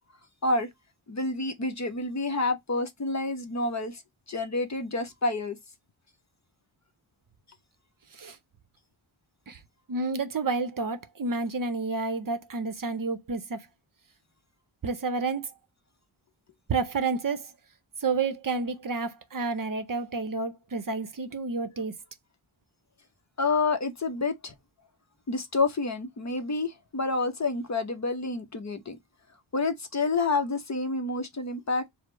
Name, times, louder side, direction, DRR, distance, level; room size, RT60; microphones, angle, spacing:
voice 1, 1.1-4.0 4.3-5.6 23.4-24.5 25.3-29.0 29.5-31.9, left 3 dB, 35° left, 0.7 m, -28 dB
voice 2, 9.9-13.7 14.8-15.5 16.7-17.5 18.0-21.9, right 4 dB, 45° right, 0.7 m, -30 dB
4.9 x 2.0 x 4.4 m
wide cardioid pair, 100°, 48 cm